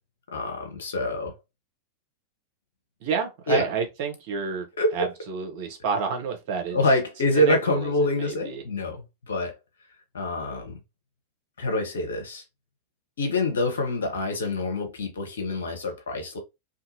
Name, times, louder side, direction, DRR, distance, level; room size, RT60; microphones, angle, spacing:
voice 1, 0.3-1.3 3.5-3.6 4.8-5.1 6.7-9.5 10.1-10.8 11.6-12.4 13.2-16.4, left 1 dB, 65° left, 0.9 m, -26 dB
voice 2, 3.0-4.7 4.9-6.8 7.3-8.6, right 5 dB, 50° right, 0.9 m, -29 dB
2.7 x 2.6 x 2.7 m
figure-of-eight pair, 90°, 0 cm